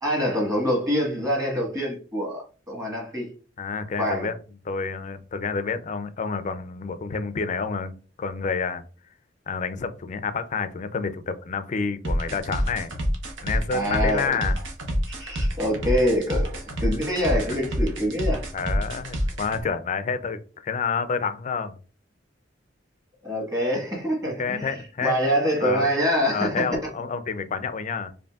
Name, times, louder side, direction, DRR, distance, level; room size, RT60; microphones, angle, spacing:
voice 1, 0.0-3.3 4.0-4.3 13.7-14.2 15.1-18.4 23.2-26.7, equal, 20° right, 1.4 m, -25 dB
voice 2, 3.6-4.4 4.7-8.8 9.5-12.9 13.4-14.6 18.5-21.8 24.4-25.2 25.6-25.9 26.3-28.1, left 5 dB, 40° left, 0.4 m, -29 dB
sound 1, 12.0-19.6, equal, 75° right, 0.9 m, -27 dB
5.1 x 2.6 x 2.4 m
head